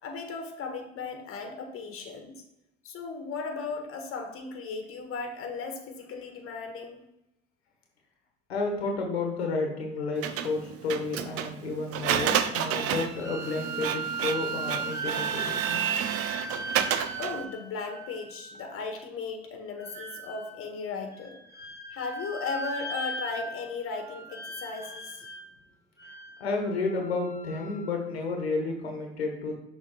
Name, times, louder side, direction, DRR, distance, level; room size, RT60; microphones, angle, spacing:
voice 1, 0.0-2.3 2.8-7.0 17.2-21.4 21.9-25.2, left 4 dB, 45° left, 5 dB, 1.4 m, -36 dB
voice 2, 8.5-15.8 26.4-29.5, left 3 dB, 85° left, 2 dB, 1.2 m, -31 dB
Printer, 10.2-17.4, right 9 dB, 50° right, 0.7 m, -30 dB
sound 1, 12.5-18.7 19.8-20.6 21.1-23.7 24.0-25.5 26.0-28.0, right 3 dB, 10° right, 1.7 m, -38 dB
6.3 x 3.5 x 4.9 m, 0.88 s
hypercardioid pair, 65°, 31 cm